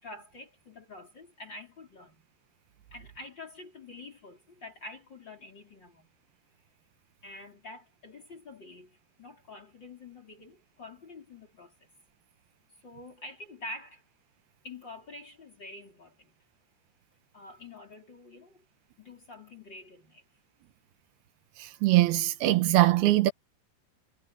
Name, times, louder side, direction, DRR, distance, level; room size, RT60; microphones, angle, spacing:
voice 1, 0.0-2.3 2.9-6.1 7.2-11.9 12.8-14.0 14.6-16.4 17.3-18.6 19.0-20.2, left 2 dB, 25° left, 4.6 m, -47 dB
voice 2, 21.6-23.3, right 16 dB, 75° right, 2.6 m, -22 dB
omnidirectional pair, 5.1 m